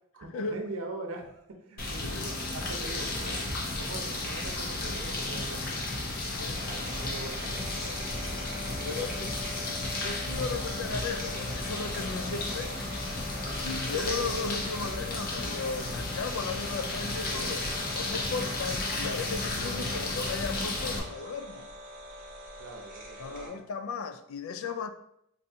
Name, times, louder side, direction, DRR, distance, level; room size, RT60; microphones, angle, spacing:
voice 1, 0.1-3.4 3.7-5.9 6.6-8.1 8.7-9.3 22.5-23.6, right 2 dB, 80° right, 0.7 m, -43 dB
sound 1, 1.8-21.0, left 2 dB, 45° left, 0.7 m, -33 dB
sound 2, 4.5-23.5, left 1 dB, 40° right, 0.7 m, -44 dB
voice 2, 8.8-9.3 10.0-12.8 13.6-21.7 23.2-24.9, left 4 dB, 70° left, 0.3 m, -36 dB
4.3 x 2.6 x 2.7 m
head